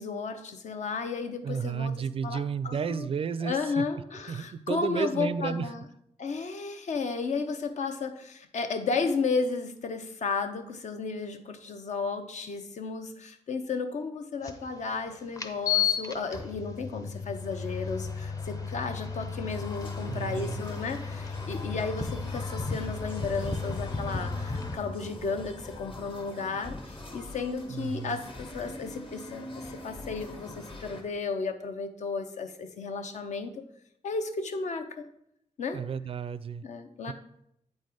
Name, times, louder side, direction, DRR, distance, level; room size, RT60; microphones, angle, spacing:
voice 1, 0.0-2.0 2.2-3.1 3.4-5.8 6.2-33.6 34.0-35.1 35.6-35.8 36.6-37.1, left 4 dB, 70° left, 7 dB, 0.8 m, -33 dB
voice 2, 1.4-3.8 4.3-5.7 20.1-20.6 27.7-28.2 35.7-36.7 37.1-37.2, right 6 dB, 45° right, 15 dB, 0.4 m, -32 dB
sound 1, 14.4-14.5 15.4-24.7, left 6 dB, 25° left, 0.8 m, -33 dB
sound 2, 19.5-31.0, left 1 dB, 45° left, 1.3 m, -43 dB
8.6 x 4.3 x 4.9 m, 0.76 s
wide cardioid pair, 115°, 13 cm